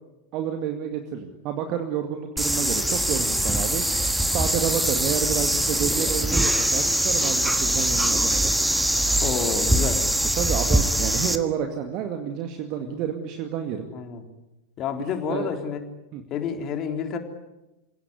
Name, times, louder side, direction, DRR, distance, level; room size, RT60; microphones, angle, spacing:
voice 1, 0.3-3.8 4.3-8.5 10.4-13.9 15.3-15.5 16.1-16.2, right 8 dB, 40° right, 6 dB, 2.2 m, -29 dB
sound 1, 2.4-11.4, right 1 dB, 5° right, 1.5 m, -23 dB
voice 2, 9.2-10.0 12.8-13.0 13.9-14.2 14.8-15.8 16.3-17.2, left 6 dB, 35° left, 5 dB, 3.7 m, -29 dB
28.0 x 17.5 x 9.8 m, 0.99 s
figure-of-eight pair, 90°, 0 cm